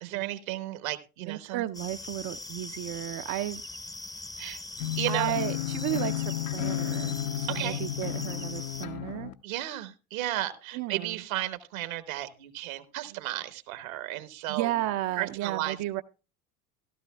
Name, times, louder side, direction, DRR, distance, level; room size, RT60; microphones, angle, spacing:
voice 1, 0.0-1.6 4.4-4.6 5.0-5.4 7.5-7.8 9.4-14.8 15.2-16.0, right 14 dB, 70° right, 12 dB, 1.1 m, -34 dB
voice 2, 1.2-3.6 5.1-9.3 10.7-11.2 14.5-16.0, right 15 dB, 45° right, 9 dB, 0.5 m, -33 dB
sound 1, 1.7-8.9, left 2 dB, 10° left, 0.6 m, -41 dB
sound 2, 4.8-9.3, left 12 dB, 55° left, 0.8 m, -32 dB
15.5 x 12.5 x 2.2 m, 0.31 s
hypercardioid pair, 75°, 42 cm